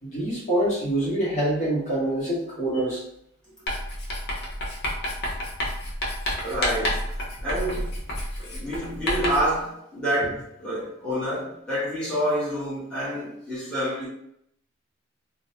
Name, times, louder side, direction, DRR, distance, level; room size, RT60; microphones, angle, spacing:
voice 1, 0.0-3.0, right 1 dB, 40° left, -7 dB, 1.0 m, -25 dB
Writing, 3.7-9.6, equal, 55° left, 0.7 m, -30 dB
voice 2, 6.4-7.0 7.4-7.9 8.4-14.1, equal, 5° left, -10 dB, 1.0 m, -28 dB
2.6 x 2.0 x 2.8 m, 0.74 s
head